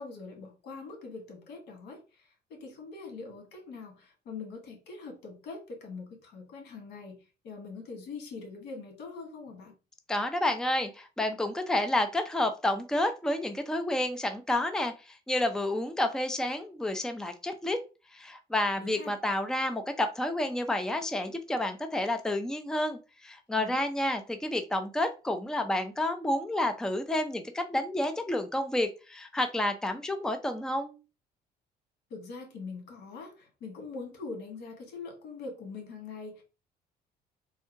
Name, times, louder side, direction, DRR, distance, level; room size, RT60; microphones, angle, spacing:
voice 1, 0.0-7.2 7.4-9.7 18.7-19.1 23.6-23.8 32.1-36.4, left 4 dB, 80° left, 1.7 m, -43 dB
voice 2, 10.1-17.8 18.1-31.0, left 1 dB, 5° left, 0.5 m, -30 dB
3.6 x 2.8 x 4.4 m
cardioid pair, 110°, 17 cm